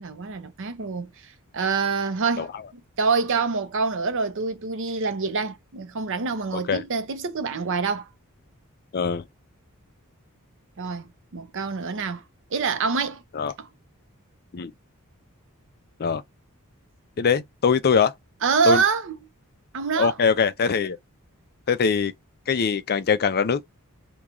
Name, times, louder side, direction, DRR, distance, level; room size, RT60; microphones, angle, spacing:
voice 1, 0.0-2.5 3.0-8.1 10.8-12.2 12.5-13.2 13.6-13.7 18.4-19.1 19.7-20.1, right 5 dB, 60° right, 0.6 m, -26 dB
voice 2, 6.5-6.8 8.9-9.2 13.3-13.5 14.5-14.7 16.0-16.2 17.2-18.1 18.6-18.8 19.9-21.0 21.7-22.1 22.5-23.6, left 5 dB, 45° left, 0.5 m, -22 dB
3.0 x 2.3 x 3.7 m
head